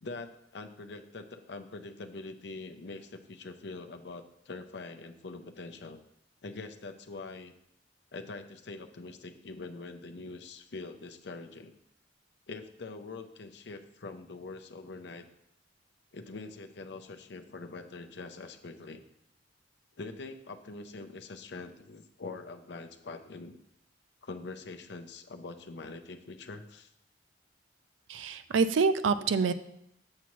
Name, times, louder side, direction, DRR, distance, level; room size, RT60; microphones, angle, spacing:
voice 1, 0.0-6.0 6.4-7.5 8.1-11.7 12.5-15.3 16.1-19.0 20.0-23.6 24.2-26.9, left 3 dB, 60° left, 6 dB, 0.6 m, -44 dB
voice 2, 28.1-29.5, right 5 dB, 85° right, 11 dB, 0.4 m, -26 dB
7.5 x 7.1 x 3.0 m, 0.77 s
head